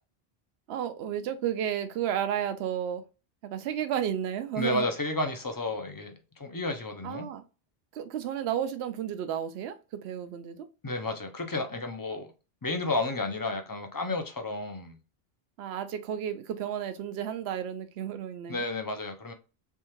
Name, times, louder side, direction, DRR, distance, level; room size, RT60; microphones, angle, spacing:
voice 1, 0.7-3.0 3.4-4.9 7.0-7.4 7.9-9.8 10.0-10.7 15.6-18.6, right 9 dB, 80° right, 0.8 m, -32 dB
voice 2, 4.6-7.3 10.8-12.3 12.6-15.0 18.5-19.3, left 2 dB, 25° left, 0.5 m, -32 dB
3.5 x 3.2 x 3.0 m
omnidirectional pair, 1.1 m